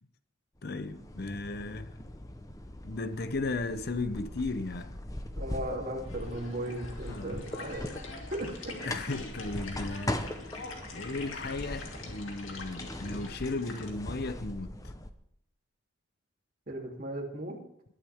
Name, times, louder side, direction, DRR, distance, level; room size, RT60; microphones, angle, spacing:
voice 1, 0.6-2.0 2.8-5.0 7.1-7.6 8.8-10.3 10.9-14.7, left 3 dB, 50° left, 0.8 m, -35 dB
sound 1, 0.6-15.1, left 1 dB, 15° left, 0.9 m, -41 dB
voice 2, 5.4-7.9 8.3-8.9 16.7-17.6, right 1 dB, 45° right, 3.1 m, -37 dB
sound 2, 6.0-13.9, left 3 dB, 90° left, 3.0 m, -44 dB
21.5 x 11.5 x 3.6 m
head